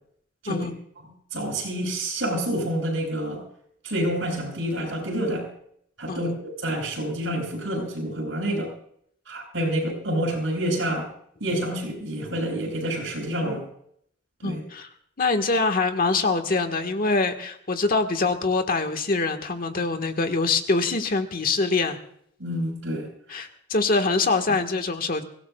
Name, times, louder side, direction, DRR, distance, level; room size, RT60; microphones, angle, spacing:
voice 1, 0.5-0.8 6.1-6.4 8.5-8.6 14.4-14.9 15.2-22.0 23.3-25.2, left 3 dB, 50° left, 6 dB, 1.5 m, -24 dB
voice 2, 1.3-3.4 3.8-5.5 6.0-8.7 9.3-11.1 11.4-13.7 14.4-14.6 22.4-23.1, right 1 dB, 80° right, 1 dB, 6.9 m, -28 dB
24.0 x 17.5 x 2.3 m, 0.68 s
head